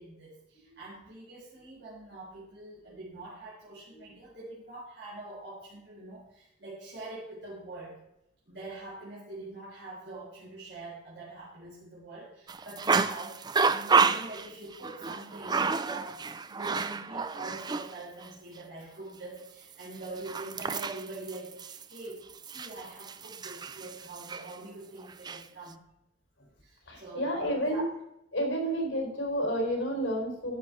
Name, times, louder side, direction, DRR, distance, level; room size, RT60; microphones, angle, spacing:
voice 1, 0.0-8.0 8.5-25.8 26.6-27.8, right 2 dB, 65° right, -7 dB, 3.7 m, -44 dB
sound 1, 12.5-17.9 18.2-18.3 19.8-24.5 25.0-25.4, right 5 dB, 20° right, 0.4 m, -30 dB
voice 2, 26.9-27.8 28.3-30.6, equal, 80° left, 1 dB, 4.1 m, -30 dB
13.5 x 6.3 x 4.1 m, 0.82 s
head